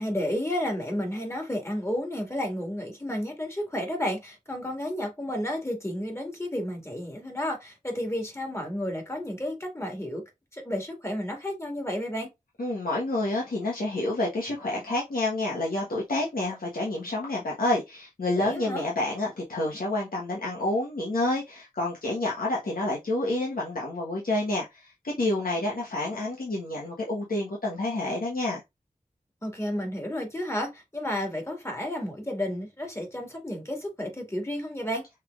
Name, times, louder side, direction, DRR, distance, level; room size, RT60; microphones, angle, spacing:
voice 1, 0.0-10.2 10.5-12.3 18.4-18.8 29.4-35.0, left 1 dB, 20° left, 2.0 m, -32 dB
voice 2, 12.6-28.6, left 2 dB, 80° left, 1.3 m, -29 dB
5.6 x 3.5 x 2.4 m
wide cardioid pair, 65°, 15 cm